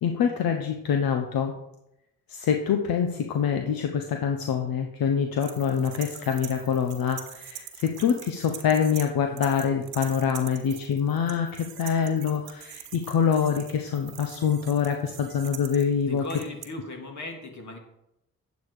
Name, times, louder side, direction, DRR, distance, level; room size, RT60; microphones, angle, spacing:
voice 1, 0.0-1.5 2.3-16.2, left 7 dB, 75° left, 4 dB, 1.1 m, -25 dB
sound 1, 5.4-9.1 9.4-16.6, right 11 dB, 85° right, 1.3 m, -43 dB
voice 2, 16.0-17.8, left 2 dB, 50° left, 2 dB, 3.0 m, -37 dB
9.5 x 8.2 x 4.9 m, 0.84 s
supercardioid pair, 50°, 36 cm